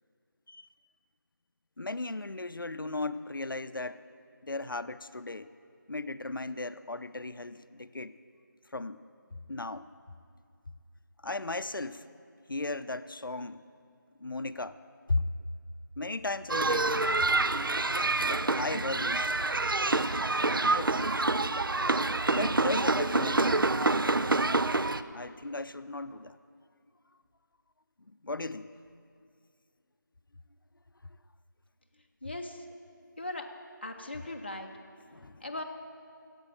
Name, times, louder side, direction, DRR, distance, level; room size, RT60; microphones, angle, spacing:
voice 1, 1.8-4.0 4.4-5.5 5.9-8.1 8.7-9.0 9.5-9.9 11.2-12.0 12.5-13.6 14.2-14.8 15.1-15.3 16.0-16.9 18.2-19.4 20.5-21.2 22.3-23.8 25.1-26.4 28.1-28.7 35.1-35.4, left 2 dB, 85° left, 13 dB, 0.5 m, -36 dB
sound 1, 16.5-25.0, right 2 dB, 85° right, 0.5 m, -27 dB
voice 2, 32.2-32.6 33.2-33.5 33.8-34.7 35.4-35.6, left 2 dB, 30° left, 3 dB, 0.8 m, -38 dB
11.0 x 8.0 x 8.9 m, 2.3 s
figure-of-eight pair, 175°, 11 cm